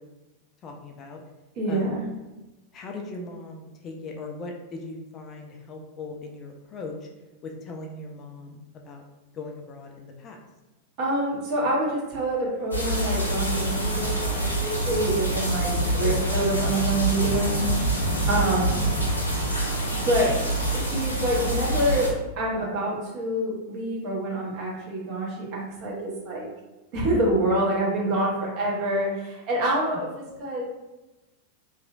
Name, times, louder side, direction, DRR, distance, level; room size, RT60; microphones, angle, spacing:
voice 1, 0.6-1.2 1.7-2.0 2.7-7.1 7.4-8.6 8.8-9.0 9.3-10.4 18.3-18.5, left 3 dB, 30° left, 2 dB, 0.3 m, -39 dB
voice 2, 1.6-2.0 11.0-17.6 18.3-18.8 20.0-20.3 20.7-22.1 22.4-26.4 26.9-30.1 30.4-30.6, right 1 dB, 45° right, -3 dB, 0.9 m, -26 dB
sound 1, 12.7-22.1, right 1 dB, 80° left, 0.6 m, -26 dB
2.9 x 2.4 x 2.4 m, 1.1 s
figure-of-eight pair, 90°, 0 cm